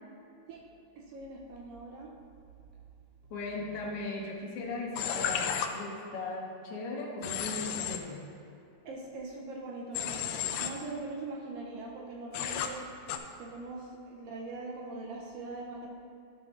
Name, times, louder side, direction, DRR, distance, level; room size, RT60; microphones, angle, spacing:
voice 1, 0.9-2.1 3.6-3.7 8.8-15.9, right 2 dB, 75° right, -1 dB, 1.5 m, -42 dB
voice 2, 3.3-8.3, left 2 dB, 65° left, -2 dB, 1.6 m, -38 dB
Human voice / Train, 5.0-5.7 7.2-8.0 9.9-10.7 12.3-12.7 13.1-13.2, left 9 dB, 85° left, 1.5 m, -32 dB
11.5 x 4.8 x 3.7 m, 2.7 s
omnidirectional pair, 3.5 m